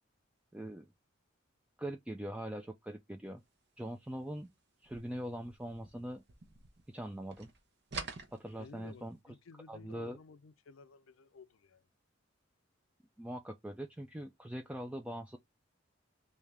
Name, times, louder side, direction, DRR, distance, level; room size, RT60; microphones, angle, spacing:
voice 1, 0.5-0.9 1.8-3.4 3.8-4.5 4.8-6.2 6.9-7.5 8.3-9.2 9.7-10.2 13.2-15.4, right 1 dB, 5° right, 0.3 m, -42 dB
sound 1, 4.8-7.0 7.3-9.1, right 4 dB, 60° right, 0.9 m, -47 dB
voice 2, 8.6-11.9, left 4 dB, 90° left, 0.5 m, -55 dB
3.5 x 2.7 x 3.2 m
head